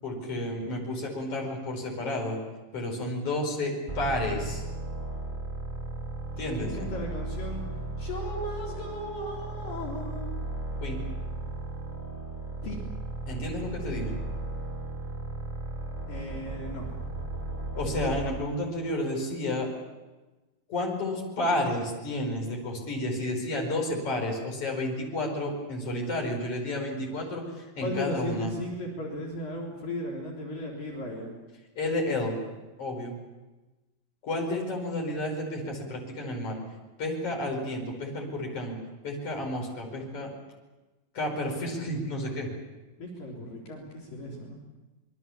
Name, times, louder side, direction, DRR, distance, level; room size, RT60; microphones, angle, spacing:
voice 1, 0.0-2.4 2.7-4.6 6.4-6.8 10.8-11.0 13.3-14.1 17.8-19.7 20.7-28.5 31.8-32.4 32.8-33.1 34.2-36.6 37.0-38.8 39.0-40.3 41.1-42.5, left 1 dB, 40° left, 1 dB, 5.8 m, -31 dB
sound 1, 3.9-18.6, right 2 dB, 10° right, 1.2 m, -35 dB
voice 2, 6.6-7.7 8.0-10.4 12.6-12.8 16.1-16.9 27.8-31.4 43.0-44.6, left 1 dB, 65° left, -2 dB, 5.3 m, -36 dB
25.5 x 23.0 x 7.2 m, 1.1 s
omnidirectional pair, 4.3 m